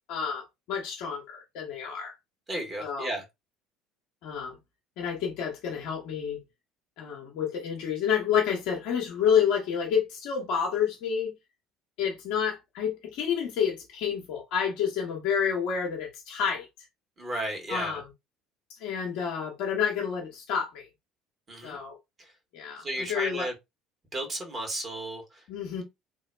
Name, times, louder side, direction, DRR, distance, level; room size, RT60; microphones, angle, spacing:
voice 1, 0.1-2.1 2.8-3.1 4.2-4.5 5.0-6.4 7.0-11.3 12.0-16.7 17.7-18.1 18.8-20.9 21.6-21.9 22.5-23.5 25.5-25.8, left 7 dB, 60° left, 0.7 m, -29 dB
voice 2, 2.5-3.2 17.2-18.0 21.5-21.8 22.2-22.3 22.8-23.5 24.1-25.4, right 1 dB, 30° right, 1.4 m, -34 dB
2.9 x 2.2 x 2.2 m
figure-of-eight pair, 60°, 0 cm